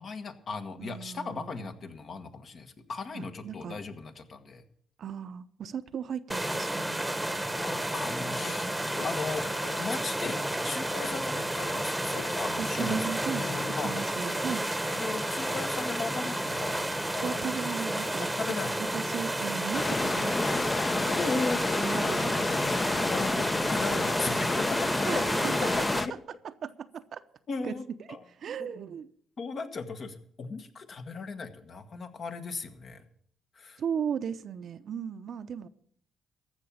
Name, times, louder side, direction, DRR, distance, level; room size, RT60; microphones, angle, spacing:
voice 1, 0.0-4.6 7.5-9.5 9.8-10.4 10.6-13.0 13.8-13.9 14.9-16.8 17.1-17.4 18.2-18.7 21.1-21.6 23.0-25.2 27.5-27.8 28.1-28.2 29.4-33.0 33.5-33.8, left 4 dB, 50° left, 1.4 m, -37 dB
voice 2, 0.8-1.7 3.1-3.8 5.0-7.0 7.9-9.0 12.6-14.6 17.2-18.6 18.9-21.2 21.5-23.5 23.9-24.0 25.1-25.9 26.4-27.2 27.6-27.7 28.1-29.1 33.8-35.7, right 7 dB, 60° right, 0.7 m, -37 dB
sound 1, 6.3-26.0, right 1 dB, 5° right, 1.1 m, -31 dB
sound 2, 7.9-19.5 19.8-20.3, left 7 dB, 75° left, 0.7 m, -47 dB
sound 3, 19.7-26.1, left 3 dB, 30° left, 0.7 m, -29 dB
14.5 x 6.1 x 8.7 m
cardioid pair, 90°, 0 cm